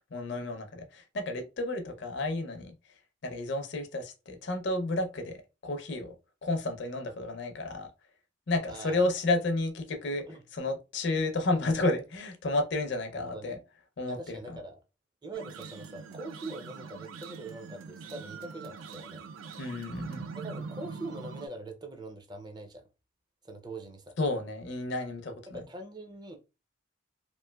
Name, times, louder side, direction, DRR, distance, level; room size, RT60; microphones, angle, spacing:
voice 1, 0.1-2.7 3.2-5.4 5.6-6.1 6.4-7.9 8.5-10.2 10.5-13.6 14.0-14.6 19.6-20.3 24.2-25.6, left 2 dB, 60° left, 0.5 m, -31 dB
voice 2, 8.7-9.1 10.3-10.4 13.1-13.6 14.1-14.8 15.2-19.2 20.3-22.8 23.4-24.1 25.5-26.4, right 2 dB, 20° right, 0.4 m, -43 dB
sound 1, 15.3-21.5, right 5 dB, 80° right, 0.4 m, -43 dB
3.0 x 2.5 x 2.2 m
head